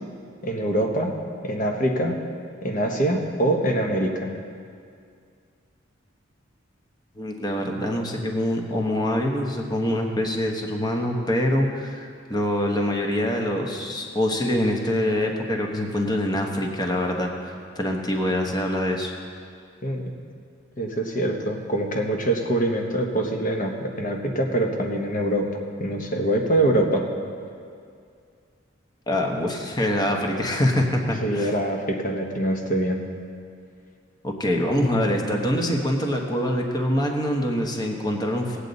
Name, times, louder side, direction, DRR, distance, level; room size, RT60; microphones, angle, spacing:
voice 1, 0.4-1.1 1.4-2.1 2.6-4.3 19.8-20.1 20.8-25.5 25.8-27.1 31.2-33.0, right 1 dB, 45° left, 2 dB, 1.2 m, -24 dB
voice 2, 7.2-19.1 29.1-31.5 34.2-38.6, left 1 dB, 20° left, 1 dB, 1.1 m, -25 dB
19.0 x 8.2 x 4.1 m, 2.3 s
head